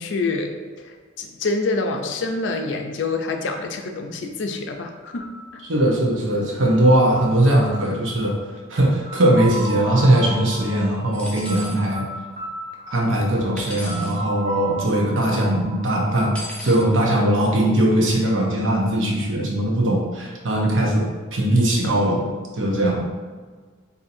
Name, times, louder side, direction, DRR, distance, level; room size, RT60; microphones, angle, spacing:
voice 1, 0.0-5.6, left 3 dB, 75° left, 4 dB, 0.4 m, -27 dB
sound 1, 5.2-16.9, right 2 dB, 35° right, 1.0 m, -36 dB
voice 2, 5.7-8.4 8.7-12.1 12.9-16.3 16.6-22.3 22.5-23.1, right 1 dB, 90° right, -2 dB, 0.8 m, -20 dB
sound 2, 11.1-11.8 13.6-14.2 16.3-16.8, left 1 dB, 5° left, 0.5 m, -36 dB
4.2 x 2.7 x 2.6 m, 1.5 s
head